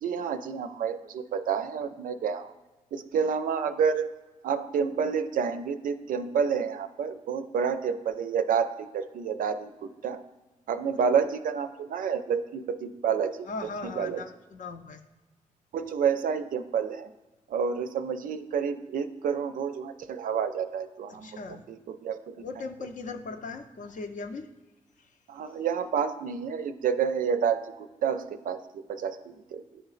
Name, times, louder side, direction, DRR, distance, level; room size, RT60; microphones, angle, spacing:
voice 1, 0.0-2.5 2.9-4.1 4.4-10.2 10.7-13.5 13.8-14.2 15.7-17.1 17.5-22.4 25.3-29.6, right 6 dB, 85° right, 9 dB, 0.4 m, -29 dB
voice 2, 13.5-15.0 21.1-21.6 22.4-24.5, left 3 dB, 70° left, 7 dB, 0.6 m, -38 dB
10.0 x 3.9 x 2.4 m, 1.2 s
cardioid pair, 60°, 14 cm